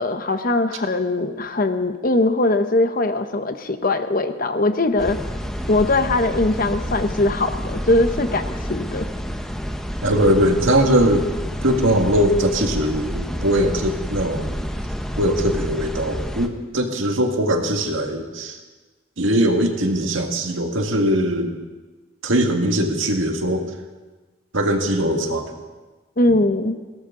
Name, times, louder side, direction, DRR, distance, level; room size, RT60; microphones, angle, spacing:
voice 1, 0.0-5.2 5.7-9.1 26.2-26.8, left 2 dB, 45° left, 9 dB, 0.9 m, -21 dB
sound 1, 5.0-16.5, equal, 5° left, 0.9 m, -29 dB
voice 2, 10.0-11.3 11.6-14.7 15.2-18.6 19.2-21.6 22.2-23.7 24.5-25.4, equal, 80° right, 3 dB, 1.9 m, -20 dB
21.0 x 17.5 x 3.8 m, 1.3 s
head